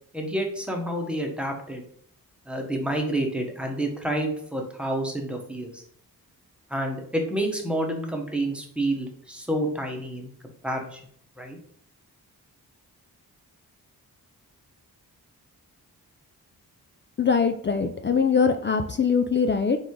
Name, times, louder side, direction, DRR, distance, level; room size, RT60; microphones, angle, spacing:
voice 1, 0.1-1.8 2.5-5.8 6.7-10.3 10.6-11.0 11.4-11.6, right 1 dB, 5° right, 2 dB, 1.1 m, -29 dB
voice 2, 17.2-19.8, left 5 dB, 30° left, 6 dB, 0.4 m, -22 dB
4.0 x 3.4 x 3.2 m, 0.62 s
cardioid pair, 70°, 37 cm